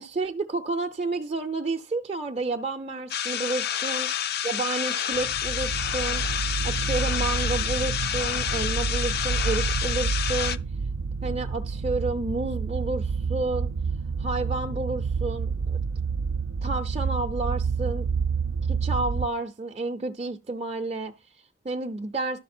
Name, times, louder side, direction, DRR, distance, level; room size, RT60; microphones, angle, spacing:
voice 1, 0.0-4.1 4.4-10.6 11.2-13.7 14.2-15.8 16.6-18.1 18.7-22.4, right 3 dB, 30° right, 0.6 m, -31 dB
sound 1, 3.1-10.6, left 9 dB, 55° left, 0.5 m, -29 dB
sound 2, 5.1-19.3, right 5 dB, 85° right, 0.5 m, -29 dB
12.0 x 6.4 x 4.3 m
head